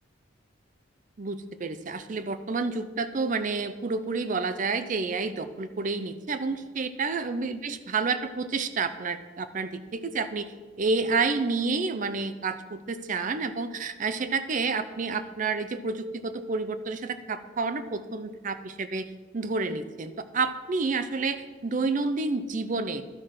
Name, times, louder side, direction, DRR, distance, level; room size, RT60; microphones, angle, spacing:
voice 1, 1.2-10.5 10.8-23.0, right 4 dB, 40° right, 11 dB, 0.5 m, -29 dB
12.0 x 4.8 x 5.8 m, 1.3 s
head